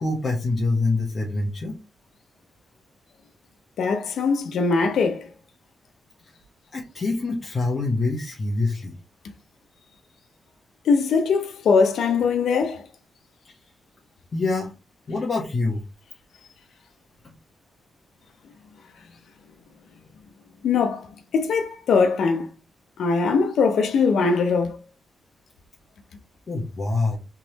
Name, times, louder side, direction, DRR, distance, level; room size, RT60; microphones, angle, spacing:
voice 1, 0.0-1.8 6.7-8.9 14.3-14.7 15.1-15.8 26.5-27.2, left 3 dB, 45° left, 1.0 m, -25 dB
voice 2, 3.8-5.3 10.9-12.8 20.6-21.1 21.3-22.5 23.0-24.8, left 5 dB, 80° left, 0.6 m, -21 dB
3.6 x 3.0 x 2.8 m
cardioid pair, 85°, 0 cm